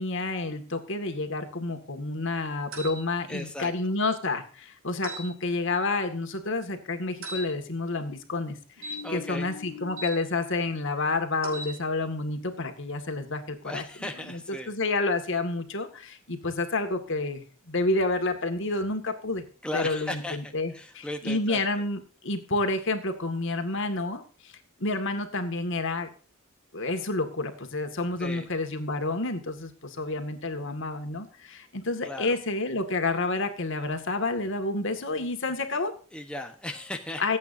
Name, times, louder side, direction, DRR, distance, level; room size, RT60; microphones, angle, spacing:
voice 1, 0.0-14.4 14.7-19.4 19.7-24.5 24.8-26.1 26.7-35.9 37.2-37.4, left 2 dB, 60° left, 6 dB, 2.0 m, -29 dB
sound 1, 2.7-3.0 5.0-5.3 7.2-7.4 8.8-10.1 11.4-11.7, equal, 70° right, 5.8 m, -38 dB
voice 2, 3.3-3.9 9.0-9.5 13.6-14.7 19.6-21.6 28.2-28.5 32.0-32.4 36.1-37.4, left 2 dB, 5° left, 3 dB, 1.0 m, -36 dB
25.5 x 8.6 x 2.7 m, 0.40 s
head